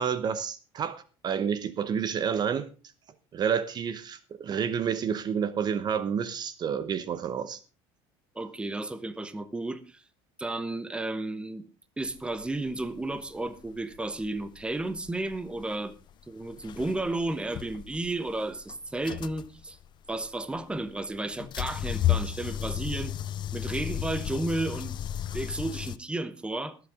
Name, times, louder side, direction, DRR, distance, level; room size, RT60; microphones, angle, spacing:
voice 1, 0.0-2.7 3.3-7.6, right 7 dB, 35° right, 13 dB, 0.9 m, -29 dB
voice 2, 8.3-10.0 10.4-11.6 12.0-15.9 16.3-19.8 20.1-23.1 23.5-25.0 25.3-26.8, right 2 dB, 10° right, 12 dB, 1.1 m, -33 dB
sound 1, 12.1-26.0, left 11 dB, 40° left, 0.6 m, -34 dB
21.0 x 8.0 x 3.7 m, 0.34 s
cardioid pair, 130°, 12 cm